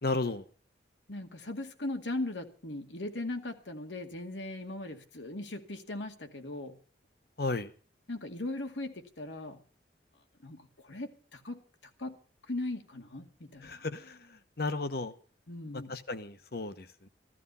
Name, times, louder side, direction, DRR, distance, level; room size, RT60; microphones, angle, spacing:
voice 1, 0.0-0.4 7.4-7.7 13.6-14.2 14.6-15.1 15.9-17.1, left 3 dB, 55° left, 12 dB, 1.1 m, -33 dB
voice 2, 1.1-6.8 8.1-9.6 10.4-10.6 10.9-11.6 12.0-12.1 12.5-13.9 15.5-15.9, left 2 dB, 85° left, 5 dB, 2.1 m, -38 dB
15.0 x 14.0 x 5.6 m, 0.41 s
head